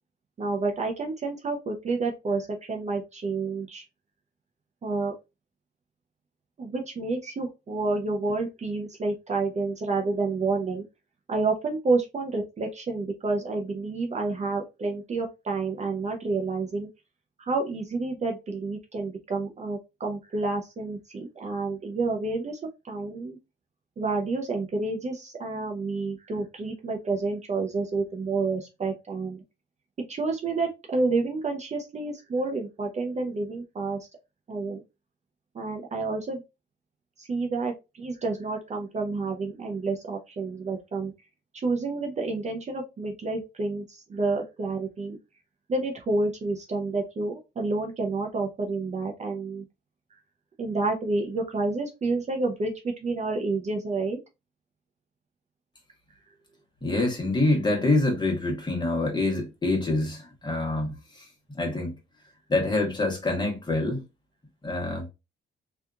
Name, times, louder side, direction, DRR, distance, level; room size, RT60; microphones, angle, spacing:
voice 1, 0.4-3.8 4.8-5.1 6.6-10.8 11.3-16.9 17.4-22.6 22.8-23.4 24.0-29.4 30.1-34.0 34.5-34.8 35.5-36.4 37.2-41.1 41.5-45.2 45.7-49.6 50.6-54.2, right 3 dB, 35° right, 0.6 m, -29 dB
voice 2, 56.8-61.2 61.6-61.9 62.5-64.0 64.6-65.1, left 2 dB, 20° left, 1.1 m, -26 dB
2.7 x 2.4 x 2.3 m
cardioid pair, 90°, 20 cm